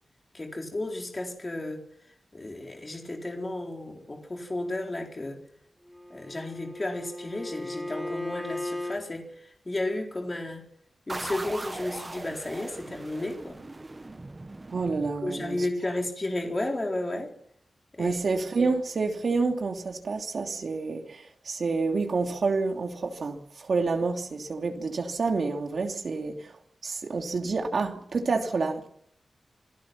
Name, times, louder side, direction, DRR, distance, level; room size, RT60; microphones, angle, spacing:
voice 1, 0.3-1.9 2.3-5.4 6.1-9.3 9.6-10.6 11.1-13.6 15.2-17.3 17.9-18.2, left 2 dB, 25° left, 4.2 m, -33 dB
Bowed string instrument, 5.9-9.0, left 1 dB, 5° left, 4.2 m, -36 dB
sound 1, 11.1-15.6, right 2 dB, 25° right, 1.1 m, -39 dB
voice 2, 14.7-15.7 18.0-26.6 26.8-28.9, right 4 dB, 60° right, 3.0 m, -28 dB
27.0 x 18.0 x 6.1 m
wide cardioid pair, 165°, 0 cm